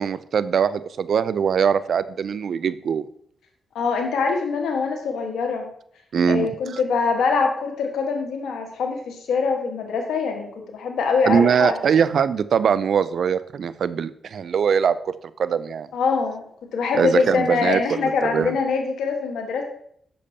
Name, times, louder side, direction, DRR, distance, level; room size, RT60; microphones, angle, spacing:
voice 1, 0.0-3.0 6.1-6.8 11.2-15.9 17.0-18.6, right 7 dB, 70° right, 15 dB, 0.4 m, -22 dB
voice 2, 3.7-5.7 6.3-11.8 15.9-16.4 16.7-19.6, left 5 dB, 80° left, 3 dB, 1.4 m, -23 dB
8.4 x 6.7 x 2.8 m, 0.66 s
supercardioid pair, 50°, 0 cm